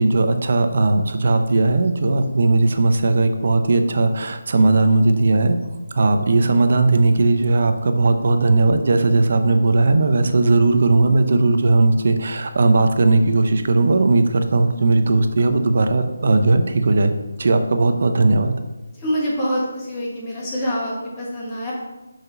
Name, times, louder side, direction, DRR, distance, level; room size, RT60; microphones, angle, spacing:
voice 1, 0.0-5.6 5.9-17.1 17.4-18.5, right 3 dB, 50° right, 7 dB, 0.8 m, -17 dB
voice 2, 19.0-21.7, equal, 15° left, -6 dB, 1.7 m, -25 dB
5.9 x 5.5 x 5.3 m, 1.1 s
figure-of-eight pair, 170°, 0 cm